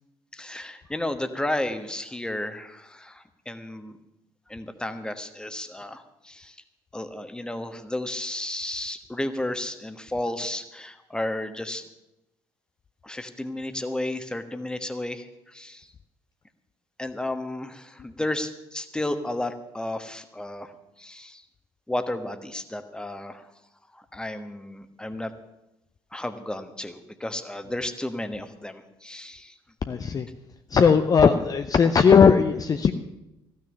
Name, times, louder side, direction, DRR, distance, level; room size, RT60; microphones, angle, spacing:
voice 1, 0.3-3.9 4.5-6.6 6.9-11.8 13.0-15.9 17.0-20.7 21.0-21.4 21.9-23.4 23.9-25.3 26.1-29.5, left 1 dB, 5° left, 9 dB, 1.3 m, -33 dB
voice 2, 29.9-30.3 30.7-32.9, left 6 dB, 30° left, 8 dB, 0.7 m, -18 dB
15.5 x 6.4 x 9.9 m, 0.92 s
figure-of-eight pair, 55°, 13 cm